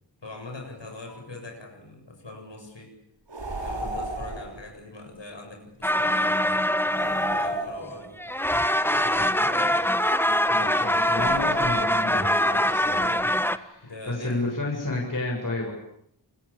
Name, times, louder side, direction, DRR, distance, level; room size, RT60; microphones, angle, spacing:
voice 1, 0.2-2.9 3.6-8.1 8.9-9.8 12.8-13.2 13.8-14.6 14.9-15.2, left 2 dB, 75° left, 2 dB, 7.7 m, -42 dB
sound 1, 3.3-4.6 6.9-8.3 11.0-12.1, right 1 dB, 70° right, 6.7 m, -35 dB
sound 2, 5.8-7.9 8.2-13.6, equal, 5° left, 1.4 m, -23 dB
voice 2, 10.5-15.7, left 2 dB, 45° left, -1 dB, 7.6 m, -31 dB
29.0 x 23.0 x 8.8 m, 0.73 s
wide cardioid pair, 70°, 44 cm